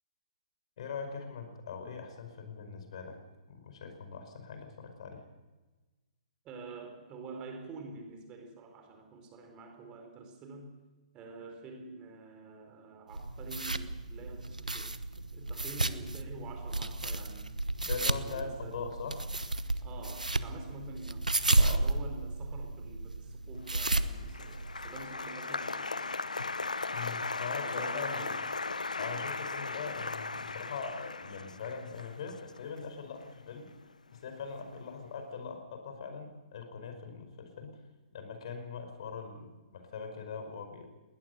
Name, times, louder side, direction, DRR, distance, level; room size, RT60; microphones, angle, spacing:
voice 1, 0.8-3.2 3.5-5.2 17.9-19.2 21.6-21.8 26.9-28.3 29.0-33.7 34.1-37.8 38.1-40.9, left 5 dB, 50° left, 6 dB, 5.0 m, -41 dB
voice 2, 6.4-10.7 11.1-17.5 18.1-18.8 19.8-26.1 27.6-28.4, right 3 dB, 25° right, 5 dB, 4.0 m, -47 dB
sound 1, 13.1-25.0, right 2 dB, 85° right, 1.1 m, -33 dB
Applause, 23.8-34.2 34.4-35.0, left 3 dB, 80° left, 0.8 m, -37 dB
21.0 x 18.5 x 6.7 m, 1.2 s
figure-of-eight pair, 125°, 4 cm